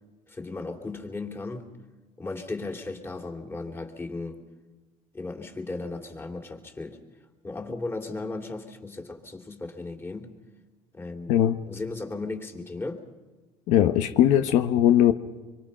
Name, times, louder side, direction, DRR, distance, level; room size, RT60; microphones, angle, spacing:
voice 1, 0.3-1.7 2.2-4.4 5.1-7.0 7.4-10.4 10.9-11.4 11.7-13.1, left 3 dB, 20° left, 3.2 m, -36 dB
voice 2, 13.7-15.1, left 11 dB, 80° left, 1.0 m, -20 dB
25.5 x 23.5 x 5.7 m
supercardioid pair, 90°, 12 cm